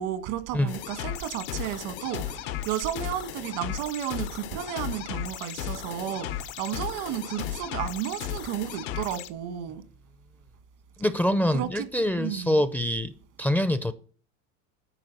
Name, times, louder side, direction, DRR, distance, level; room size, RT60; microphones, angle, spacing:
voice 1, 0.0-9.8 11.5-11.9 12.2-12.6, right 11 dB, 80° right, 1.6 m, -33 dB
sound 1, 0.7-9.3, left 11 dB, 85° left, 1.1 m, -35 dB
voice 2, 11.0-13.1 13.4-13.9, left 1 dB, 5° left, 0.4 m, -25 dB
9.9 x 4.6 x 7.6 m
cardioid pair, 135°, 35 cm